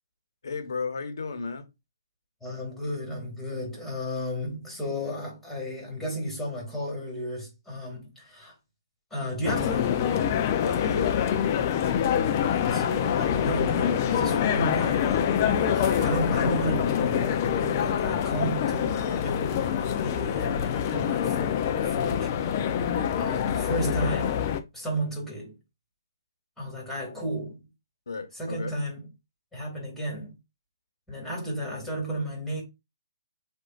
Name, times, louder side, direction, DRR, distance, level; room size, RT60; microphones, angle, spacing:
voice 1, 0.4-1.7 10.6-11.9 28.1-28.8, left 4 dB, 70° left, 1.1 m, -34 dB
voice 2, 2.4-8.5 9.1-10.0 12.4-15.3 15.7-22.5 23.1-24.5 24.7-25.6 26.6-27.6 28.3-29.0 29.5-30.4 31.1-32.6, equal, 5° left, 2.2 m, -33 dB
sound 1, 9.4-24.6, left 8 dB, 35° left, 0.5 m, -25 dB
7.8 x 2.7 x 2.4 m
hypercardioid pair, 145°, 2 cm